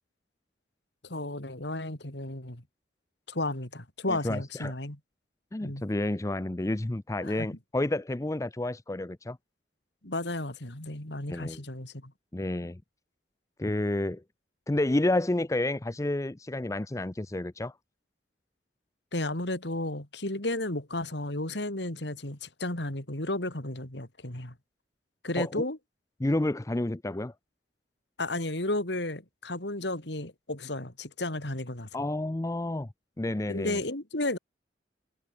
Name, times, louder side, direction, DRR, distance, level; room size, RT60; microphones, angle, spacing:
voice 1, 1.0-2.6 3.3-5.0 5.6-5.8 7.2-7.5 10.0-12.1 19.1-24.5 25.2-25.8 28.2-31.9 33.5-34.4, left 2 dB, 70° left, 3.7 m, -33 dB
voice 2, 4.1-4.7 5.5-9.4 11.3-11.6 12.3-12.8 13.6-14.2 14.7-17.7 25.4-25.6 26.2-27.3 31.9-32.9 33.2-33.8, left 1 dB, 15° left, 0.5 m, -30 dB
head